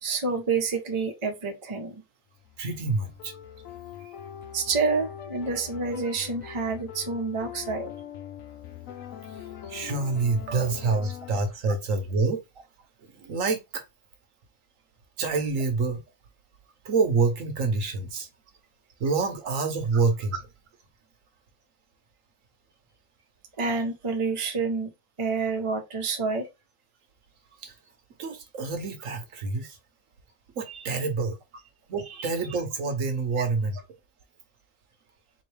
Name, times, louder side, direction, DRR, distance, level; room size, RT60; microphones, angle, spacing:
voice 1, 0.0-2.0 4.0-4.1 4.5-7.9 10.9-11.1 23.6-24.9 25.2-26.4 30.6-30.9 32.0-32.3 33.4-33.5, right 4 dB, 25° right, 0.8 m, -28 dB
sound 1, 2.4-11.4, left 9 dB, 75° left, 1.1 m, -42 dB
voice 2, 2.6-3.3 9.3-9.4 9.7-12.4 13.0-13.8 15.2-16.0 16.8-18.3 19.0-20.5 27.6-27.7 28.2-29.8 30.6-31.4 31.9-33.8, right 4 dB, 70° right, 1.2 m, -27 dB
3.9 x 3.0 x 3.2 m
omnidirectional pair, 1.4 m